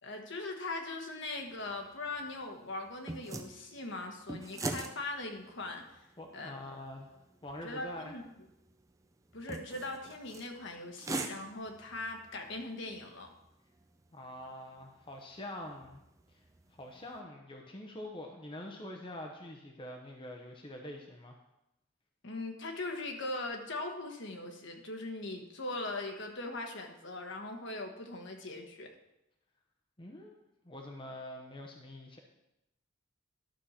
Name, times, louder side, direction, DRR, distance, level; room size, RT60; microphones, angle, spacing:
voice 1, 0.0-6.1 6.3-6.5 7.6-8.2 9.3-13.3 22.2-28.9, left 2 dB, 60° left, 3 dB, 1.3 m, -40 dB
sound 1, 1.4-17.2, right 2 dB, 15° right, 0.5 m, -46 dB
voice 2, 6.2-7.1 7.4-8.1 14.1-16.0 16.3-16.4 16.7-21.4 30.0-32.2, left 1 dB, 25° left, 1 dB, 0.8 m, -45 dB
11.5 x 6.4 x 4.3 m, 0.88 s
head